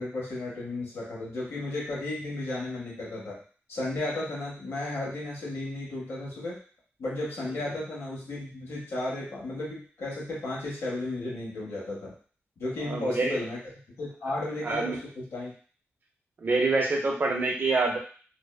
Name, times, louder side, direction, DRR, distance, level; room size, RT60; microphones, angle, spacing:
voice 1, 0.0-3.4 3.7-6.6 7.0-12.1 12.6-13.6 14.0-15.5, left 2 dB, 80° left, -5 dB, 1.1 m, -34 dB
voice 2, 12.8-13.4 14.6-15.0 16.4-18.0, right 3 dB, 45° right, 1 dB, 0.5 m, -26 dB
2.5 x 2.2 x 2.2 m, 0.41 s
wide cardioid pair, 135°, 5 cm